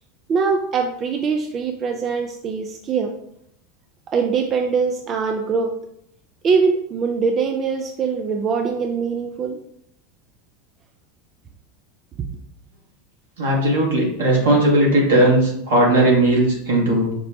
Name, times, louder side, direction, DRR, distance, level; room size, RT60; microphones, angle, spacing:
voice 1, 0.3-3.1 4.1-5.7 6.4-9.6, right 5 dB, 35° right, 3 dB, 0.3 m, -22 dB
voice 2, 13.4-17.1, right 1 dB, 80° right, -2 dB, 1.3 m, -17 dB
5.1 x 2.1 x 2.7 m, 0.71 s
hypercardioid pair, 85°, 0 cm